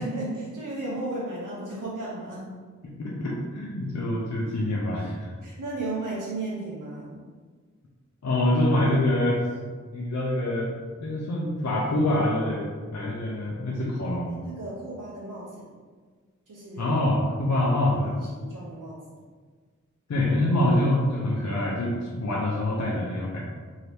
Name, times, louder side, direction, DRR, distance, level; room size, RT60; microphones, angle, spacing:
voice 1, 0.0-2.5 5.4-7.2 13.7-13.8 14.3-15.6 16.5-16.9 17.5-17.6 18.0-19.0, right 2 dB, 80° right, -6 dB, 0.7 m, -35 dB
voice 2, 2.8-5.3 8.2-9.4 9.9-10.7 11.0-14.4 16.8-18.2 20.1-23.4, left 1 dB, 60° left, -5 dB, 0.6 m, -25 dB
2.8 x 2.7 x 3.3 m, 1.5 s
wide cardioid pair, 45°, 31 cm